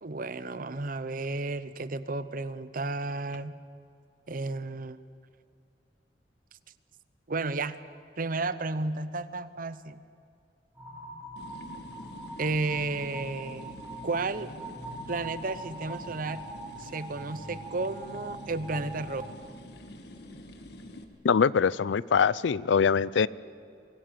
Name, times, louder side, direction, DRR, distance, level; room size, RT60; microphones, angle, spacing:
voice 1, 0.0-3.5 4.3-5.0 7.3-7.8 8.2-10.0 12.4-13.8 14.0-14.5 15.1-16.4 16.8-19.2, right 3 dB, 50° right, 14 dB, 0.8 m, -32 dB
sound 1, 10.7-19.3, right 1 dB, 15° right, 4.3 m, -42 dB
sound 2, 11.4-21.0, left 1 dB, 60° left, 1.8 m, -47 dB
voice 2, 21.2-23.3, left 6 dB, 85° left, 21 dB, 0.4 m, -23 dB
24.5 x 16.5 x 7.6 m, 2.5 s
head